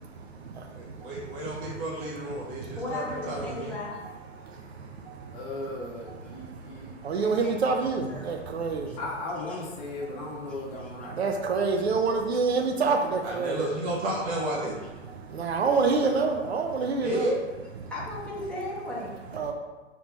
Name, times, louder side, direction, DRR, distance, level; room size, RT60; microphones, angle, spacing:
voice 1, 0.0-2.8 3.1-3.2 4.0-5.6 6.1-9.0 10.0-13.6 15.0-17.3 17.8-17.9 19.0-19.5, right 4 dB, 60° right, 4 dB, 0.8 m, -29 dB
voice 2, 0.7-3.8 13.2-14.8 17.0-17.4, right 1 dB, 20° right, -4 dB, 1.1 m, -31 dB
voice 3, 2.8-4.0 7.2-7.5 8.1-8.3 9.5-9.6 10.8-10.9 17.9-19.2, left 2 dB, 5° left, -7 dB, 1.5 m, -36 dB
voice 4, 5.3-6.9 9.0-11.2, left 2 dB, 40° left, -3 dB, 2.1 m, -36 dB
5.7 x 4.3 x 4.2 m, 1.2 s
figure-of-eight pair, 120°, 37 cm